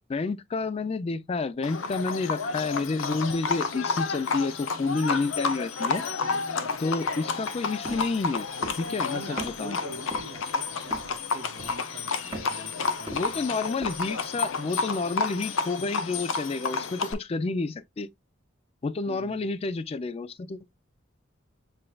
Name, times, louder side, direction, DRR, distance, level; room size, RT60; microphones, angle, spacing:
voice 1, 0.1-6.0 6.8-8.5 8.8-9.8 13.1-18.1 18.8-20.7, left 3 dB, 30° left, 0.3 m, -30 dB
Livestock farm animals working animals, 1.6-17.1, left 4 dB, 85° left, 0.6 m, -31 dB
sound 1, 7.8-8.1 8.6-8.9 9.4-9.5 10.1-10.4 10.9-11.2 11.6-11.9 12.3-12.6 13.1-13.5 13.8-14.0, right 1 dB, 20° right, 1.6 m, -38 dB
voice 2, 9.0-13.4 19.1-19.5, right 4 dB, 60° right, 0.7 m, -45 dB
7.6 x 2.6 x 2.3 m
head